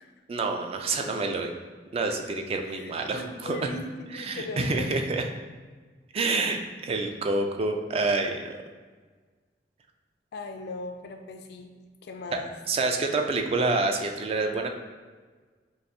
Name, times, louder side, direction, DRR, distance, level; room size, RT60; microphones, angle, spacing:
voice 1, 0.3-1.5 1.9-3.7 4.1-5.2 6.1-8.5 12.3-12.4 12.7-14.7, right 3 dB, 35° right, 4 dB, 0.3 m, -27 dB
voice 2, 2.6-4.9 10.3-11.7 12.0-12.5, left 2 dB, 65° left, 5 dB, 0.4 m, -38 dB
4.8 x 2.5 x 2.6 m, 1.4 s
head